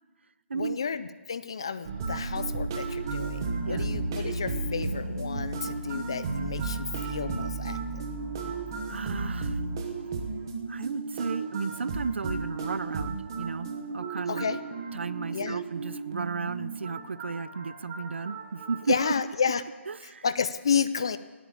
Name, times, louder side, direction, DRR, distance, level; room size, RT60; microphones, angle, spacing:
voice 1, 0.5-8.0 14.3-14.6 15.3-15.6 18.9-19.6 20.0-21.2, left 6 dB, 20° left, 14 dB, 0.4 m, -31 dB
sound 1, 1.8-19.1, right 3 dB, 15° right, 1.0 m, -34 dB
voice 2, 8.9-9.6 10.7-14.5 14.9-19.0 19.9-20.3, right 5 dB, 60° right, 18 dB, 0.5 m, -34 dB
17.5 x 8.3 x 8.7 m, 1.3 s
hypercardioid pair, 180°, 7 cm